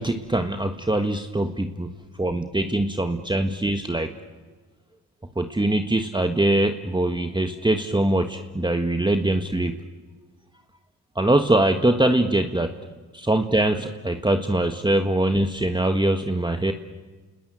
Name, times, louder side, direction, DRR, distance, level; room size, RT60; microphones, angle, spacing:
voice 1, 0.0-1.9 2.2-4.1 5.4-9.8 11.1-12.7 13.1-16.7, right 1 dB, 10° right, 6 dB, 1.6 m, -22 dB
29.0 x 20.5 x 9.0 m, 1.4 s
supercardioid pair, 60°, 39 cm